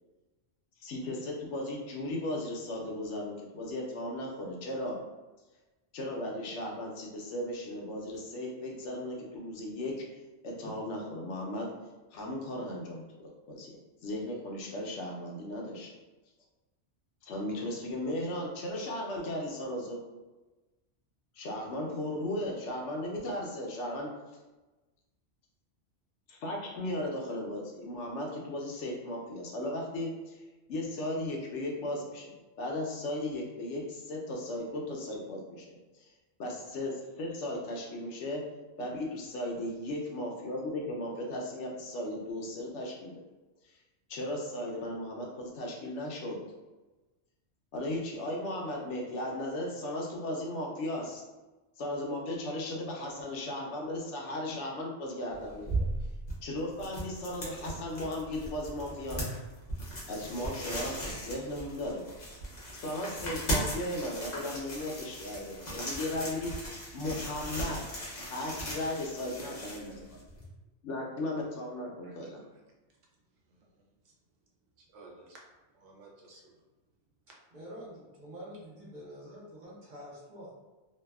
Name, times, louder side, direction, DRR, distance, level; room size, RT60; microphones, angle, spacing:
voice 1, 0.8-4.9 5.9-9.9 10.4-11.7 12.1-13.7 14.0-15.9 17.2-20.0 21.3-24.1 26.3-30.4 30.7-36.1 36.4-38.4 38.8-43.2 44.1-46.4 47.7-51.2 51.8-55.8 56.4-59.3 60.1-62.1 62.8-66.5 66.9-67.8 68.3-70.0 70.8-72.4, left 1 dB, 80° left, -1 dB, 0.9 m, -36 dB
sound 1, 55.3-70.5, right 1 dB, 45° left, 0.7 m, -38 dB
voice 2, 73.5-73.9 74.8-75.4 75.7-76.5, right 3 dB, 85° right, -1 dB, 0.9 m, -55 dB
voice 3, 77.5-80.5, equal, 50° right, -5 dB, 0.7 m, -47 dB
2.6 x 2.3 x 2.2 m, 1.1 s
omnidirectional pair, 1.2 m